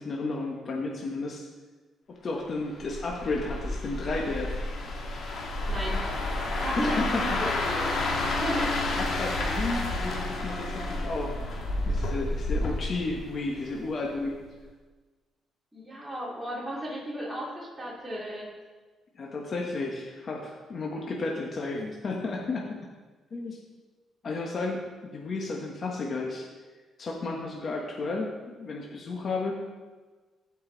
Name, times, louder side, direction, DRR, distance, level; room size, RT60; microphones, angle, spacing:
voice 1, 0.0-1.4 2.1-4.5 6.8-7.4 9.0-11.3 11.8-14.4 19.1-22.8 23.3-23.6 24.2-26.4 27.0-28.3 28.6-29.6, left 3 dB, 50° left, -1 dB, 1.3 m, -32 dB
sound 1, 2.7-13.9 14.2-14.5, left 2 dB, 65° left, 2.0 m, -30 dB
voice 2, 5.7-6.0 6.6-9.0 15.7-18.5, equal, 10° right, -6 dB, 2.9 m, -35 dB
15.5 x 5.5 x 4.0 m, 1.3 s
cardioid pair, 90°, 0 cm